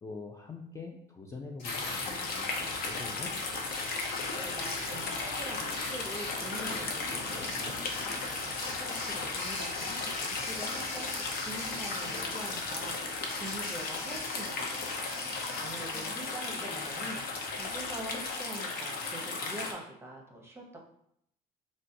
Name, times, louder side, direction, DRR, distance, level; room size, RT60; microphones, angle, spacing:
voice 1, 0.0-3.3, left 4 dB, 20° left, 1 dB, 0.3 m, -44 dB
sound 1, 1.6-18.6, left 2 dB, 85° left, 1.2 m, -44 dB
sound 2, 1.6-19.7, left 3 dB, 65° left, 0.6 m, -35 dB
voice 2, 4.3-7.8 8.2-15.1 15.6-17.2 17.6-20.8, right 1 dB, 15° right, 0 dB, 0.7 m, -44 dB
sound 3, 5.9-9.5 9.8-11.3, left 1 dB, 40° left, 1.2 m, -46 dB
3.8 x 2.2 x 2.6 m, 0.73 s
cardioid pair, 110°, 17 cm